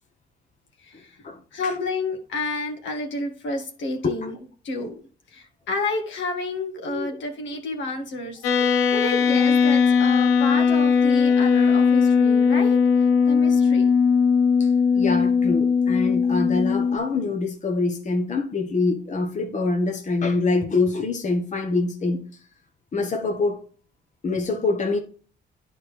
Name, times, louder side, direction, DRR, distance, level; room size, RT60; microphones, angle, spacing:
voice 1, 0.8-1.2 1.5-4.4 4.6-5.0 5.3-13.9, left 2 dB, 70° left, 1.9 m, -30 dB
sound 1, 8.4-17.0, left 6 dB, 90° left, 0.7 m, -19 dB
voice 2, 15.0-22.2 22.9-23.6 24.2-25.0, left 3 dB, 40° left, 1.2 m, -25 dB
10.5 x 4.6 x 3.4 m
cardioid pair, 90°, 20 cm